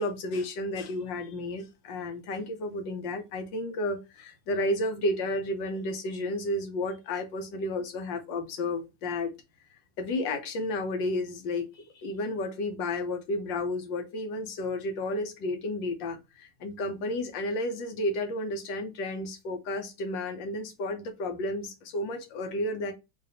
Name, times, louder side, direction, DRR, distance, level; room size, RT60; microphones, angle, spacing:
voice 1, 0.0-9.3 10.0-22.9, left 1 dB, 70° left, 1.5 m, -32 dB
4.1 x 2.8 x 2.6 m
omnidirectional pair, 2.2 m